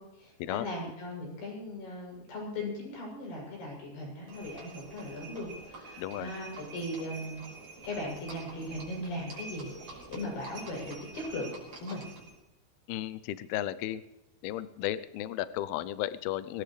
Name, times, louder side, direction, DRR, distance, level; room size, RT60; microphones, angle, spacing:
voice 1, 0.0-7.4 7.8-12.0, left 1 dB, 60° left, -2 dB, 9.7 m, -38 dB
Livestock farm animals working animals, 4.3-12.4, right 3 dB, 30° right, 5.7 m, -47 dB
voice 2, 6.0-6.3 12.9-14.0 14.4-16.6, left 13 dB, 85° left, 14 dB, 2.3 m, -34 dB
23.0 x 19.0 x 3.3 m, 0.92 s
omnidirectional pair, 5.2 m